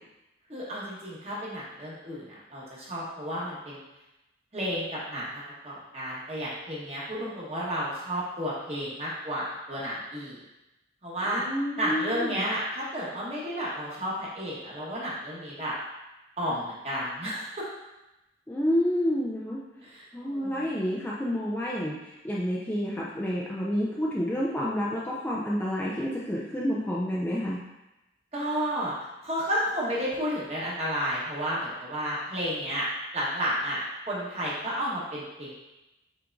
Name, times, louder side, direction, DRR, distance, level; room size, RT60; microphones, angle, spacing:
voice 1, 0.5-3.8 4.5-10.4 11.0-11.4 11.7-15.7 16.4-17.7 19.8-20.9 28.3-28.9 29.2-32.9 33.1-33.8 34.1-35.5, equal, 35° right, -7 dB, 1.3 m, -32 dB
voice 2, 11.3-12.4 18.5-19.6 20.1-22.0 22.2-27.6, equal, 10° left, -6 dB, 0.4 m, -29 dB
5.8 x 3.6 x 2.5 m, 0.95 s
head